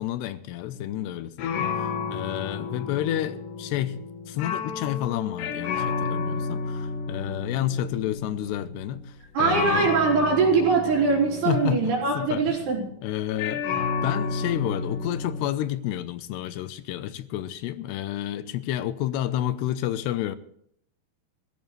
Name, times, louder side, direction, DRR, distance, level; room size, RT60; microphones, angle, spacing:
voice 1, 0.0-4.0 4.3-9.0 9.4-9.9 11.5-12.6 13.0-20.4, left 12 dB, 85° left, 3.0 m, -30 dB
sound 1, 0.7-1.1 1.4-13.0 13.4-15.5, left 5 dB, 65° left, 2.7 m, -32 dB
voice 2, 9.3-12.8, right 4 dB, 75° right, 5.6 m, -22 dB
21.0 x 14.0 x 3.3 m
omnidirectional pair, 4.8 m